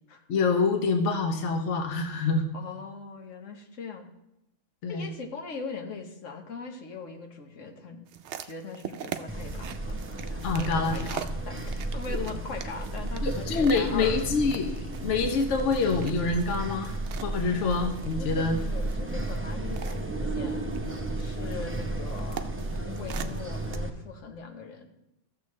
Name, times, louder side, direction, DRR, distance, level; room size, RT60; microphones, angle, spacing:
voice 1, 0.3-2.4 4.8-5.1 10.4-11.3 12.1-12.2 13.2-14.7 15.0-18.6, left 4 dB, 70° left, 4 dB, 1.1 m, -26 dB
voice 2, 2.5-4.1 4.9-8.1 8.4-10.0 10.3-14.2 18.1-20.6 21.2-22.5 22.9-24.9, left 4 dB, 85° left, 3 dB, 1.4 m, -40 dB
sound 1, 8.1-23.8, right 9 dB, 70° right, 0.8 m, -43 dB
sound 2, 9.3-23.9, right 2 dB, 15° right, 0.6 m, -33 dB
15.0 x 6.9 x 3.1 m, 0.87 s
omnidirectional pair, 1.3 m